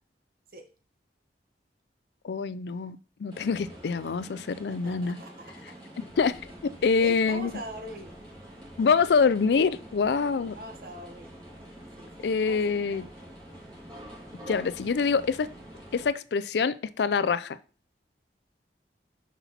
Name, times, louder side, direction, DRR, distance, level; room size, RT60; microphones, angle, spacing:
voice 1, 2.2-5.2 6.0-7.5 8.8-10.6 12.2-13.1 14.5-15.5 15.9-17.6, left 5 dB, 75° left, 0.4 m, -25 dB
sound 1, 3.3-16.1, equal, 30° right, 2.6 m, -46 dB
voice 2, 4.7-5.7 7.0-8.1 10.5-11.3 12.0-13.1, right 1 dB, 55° right, 1.2 m, -42 dB
6.0 x 5.7 x 4.1 m
head